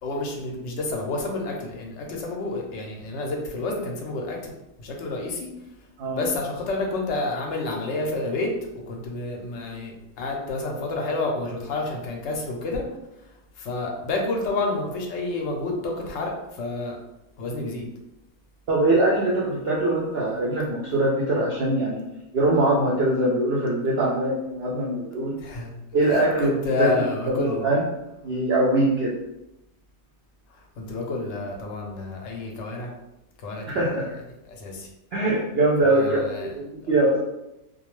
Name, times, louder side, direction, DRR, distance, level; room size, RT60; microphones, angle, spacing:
voice 1, 0.0-5.5 6.1-12.9 13.2-13.3 13.6-17.0 17.4-17.9 25.4-25.7 26.0-27.7 30.5-32.9 33.4-33.8 34.5-34.9 35.8-36.5 36.8-37.0, left 2 dB, 65° left, 1 dB, 0.7 m, -29 dB
voice 2, 18.7-22.0 22.3-25.4 25.9-26.5 26.8-27.8 28.2-29.1 33.7-34.2 35.1-37.2, right 2 dB, 70° right, -5 dB, 0.6 m, -22 dB
2.3 x 2.2 x 3.0 m, 0.92 s
omnidirectional pair, 1.6 m